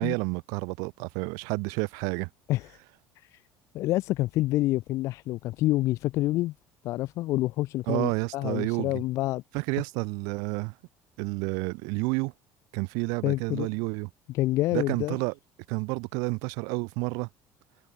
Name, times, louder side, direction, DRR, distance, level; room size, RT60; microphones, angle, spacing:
voice 1, 0.0-2.3 7.9-8.9 9.5-10.7 11.2-12.3 12.7-14.1 14.7-15.3 15.7-17.3, right 32 dB, 80° right, 0.6 m, -30 dB
voice 2, 3.7-6.5 6.8-9.4 13.2-13.7 14.3-15.2, left 17 dB, 55° left, 0.6 m, -27 dB
cardioid pair, 155°, 6 cm